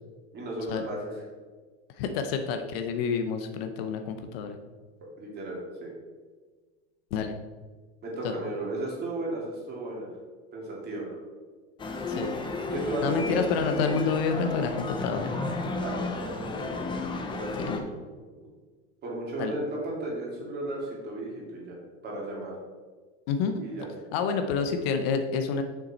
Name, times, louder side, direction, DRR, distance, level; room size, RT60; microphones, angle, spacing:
voice 1, 0.3-1.1 5.2-5.9 8.0-10.1 10.5-11.2 12.7-13.4 15.8-16.9 17.3-18.0 19.0-21.8 22.0-22.5 23.6-23.9, right 1 dB, 25° right, -3 dB, 2.5 m, -35 dB
voice 2, 2.0-4.6 7.1-7.3 8.2-8.3 12.1-12.3 13.0-15.3 17.7-17.8 19.4-19.5 23.3-23.6 24.1-25.6, left 5 dB, 55° left, 7 dB, 0.8 m, -28 dB
sound 1, 11.8-17.8, left 3 dB, 15° left, 0.6 m, -32 dB
6.8 x 6.2 x 4.2 m, 1.4 s
supercardioid pair, 150°, 36 cm